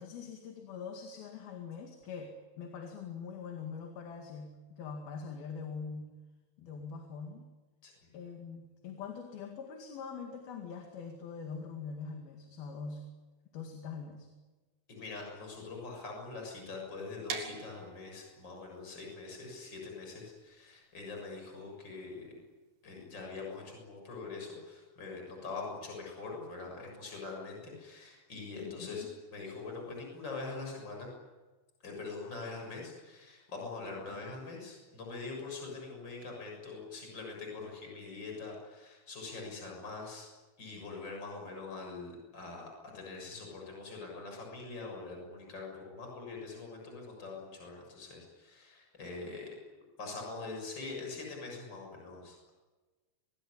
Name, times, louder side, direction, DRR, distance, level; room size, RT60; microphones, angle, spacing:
voice 1, 0.0-6.1 6.6-7.5 8.1-13.0 13.5-14.3 28.6-29.1, left 5 dB, 70° left, 4 dB, 4.0 m, -43 dB
voice 2, 14.9-22.3 22.8-31.1 31.8-40.3 40.6-52.5, left 3 dB, 25° left, 0 dB, 7.4 m, -43 dB
sound 1, 17.3-23.1, right 6 dB, 65° right, 4.3 m, -46 dB
26.5 x 20.5 x 10.0 m, 1.2 s
omnidirectional pair, 4.5 m